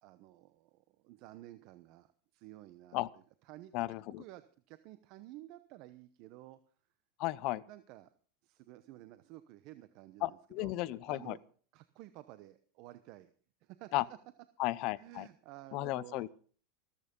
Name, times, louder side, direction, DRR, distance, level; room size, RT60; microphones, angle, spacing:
voice 1, 0.0-3.8 4.2-6.6 7.7-8.1 8.4-11.4 11.7-13.3 13.6-13.9 15.0-16.3, right 15 dB, 50° right, 12 dB, 0.9 m, -53 dB
voice 2, 3.7-4.2 7.2-7.6 10.2-11.4 13.9-14.0 14.6-15.3 15.7-16.3, left 19 dB, 45° left, 18 dB, 0.7 m, -34 dB
15.0 x 13.5 x 5.4 m, 0.44 s
supercardioid pair, 150°, 0 cm